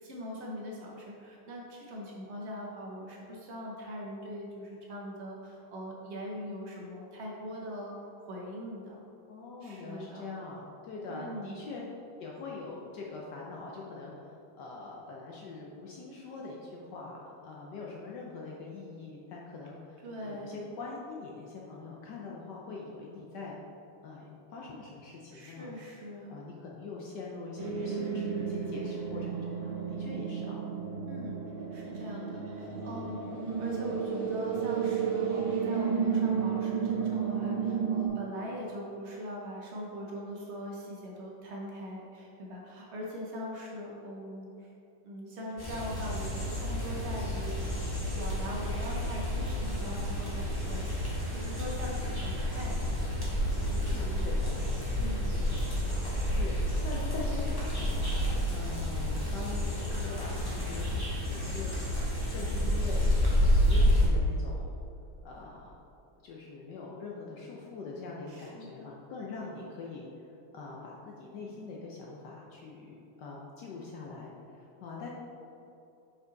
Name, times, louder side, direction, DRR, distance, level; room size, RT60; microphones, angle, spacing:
voice 1, 0.0-8.0 8.3-9.0 9.6-10.4 11.1-11.7 20.0-20.7 25.3-26.4 31.1-31.4 31.7-33.3 33.6-44.7 45.0-47.7 48.2-50.9 51.3-53.0 53.6-54.3 55.0-55.3 68.3-68.9, equal, 85° right, -3 dB, 0.6 m, -41 dB
voice 2, 9.3-11.9 12.2-23.6 24.0-25.7 26.3-30.6 53.8-54.5 56.3-58.2 58.5-61.7 62.3-64.7 65.2-65.8 66.2-70.2 70.5-75.1, left 3 dB, 70° left, -3 dB, 1.1 m, -43 dB
sound 1, 27.6-38.1, right 6 dB, 65° right, 1.8 m, -32 dB
sound 2, 45.6-64.1, equal, 15° left, 1.2 m, -30 dB
5.7 x 5.3 x 3.8 m, 2.8 s
omnidirectional pair, 2.4 m